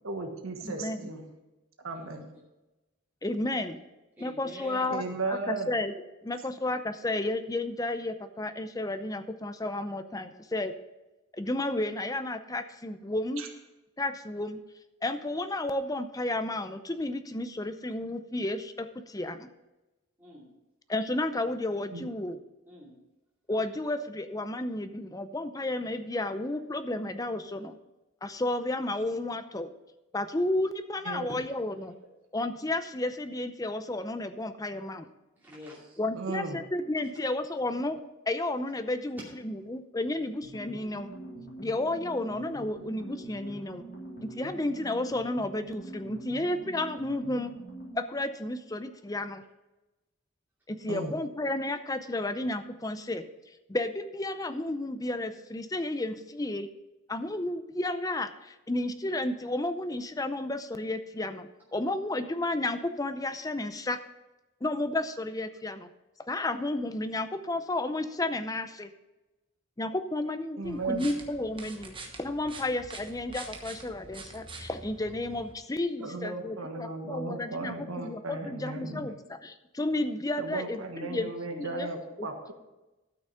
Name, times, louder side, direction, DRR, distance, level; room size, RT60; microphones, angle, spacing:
voice 1, 0.0-1.3 1.8-2.3 4.9-5.7 13.4-13.5 21.9-22.1 31.0-31.3 36.1-36.6 50.9-51.1 70.6-71.1 76.0-79.1 80.4-82.5, right 3 dB, 85° right, 4 dB, 1.4 m, -35 dB
voice 2, 0.6-1.1 3.2-3.8 4.2-5.9 6.2-10.7 11.3-13.4 14.0-14.6 15.0-19.5 20.9-22.4 23.5-27.8 28.2-29.7 30.1-32.0 32.3-35.1 36.0-38.0 38.3-41.1 41.6-43.9 44.2-47.5 47.9-49.4 50.7-56.7 57.1-64.0 64.6-65.9 66.3-68.9 69.8-81.9, left 2 dB, 15° left, 9 dB, 0.6 m, -32 dB
voice 3, 4.2-4.9 20.2-20.5 22.7-23.0 31.8-31.9 35.4-36.0 39.6-39.8, equal, 10° right, -7 dB, 2.6 m, -47 dB
sound 1, 40.4-48.1, right 1 dB, 50° left, 3.9 m, -44 dB
sound 2, 70.6-75.5, right 3 dB, 25° right, 1.1 m, -45 dB
12.5 x 6.3 x 5.7 m, 1.0 s
head